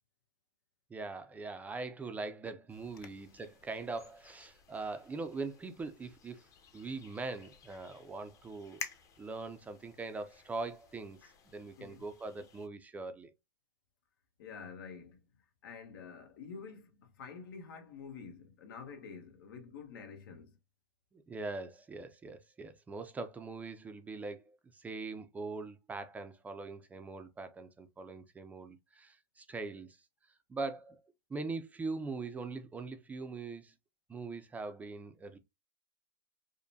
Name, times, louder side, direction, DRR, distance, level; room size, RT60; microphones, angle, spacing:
voice 1, 0.9-6.4 6.7-8.8 9.2-13.3 21.1-30.0 30.5-31.0 31.3-33.7 34.1-35.4, right 3 dB, 15° right, 0.4 m, -42 dB
sound 1, 2.7-12.7, left 7 dB, 25° left, 0.8 m, -53 dB
voice 2, 14.4-15.2 15.6-20.6, left 5 dB, 75° left, 1.2 m, -48 dB
5.1 x 2.1 x 2.6 m
supercardioid pair, 135°, 12 cm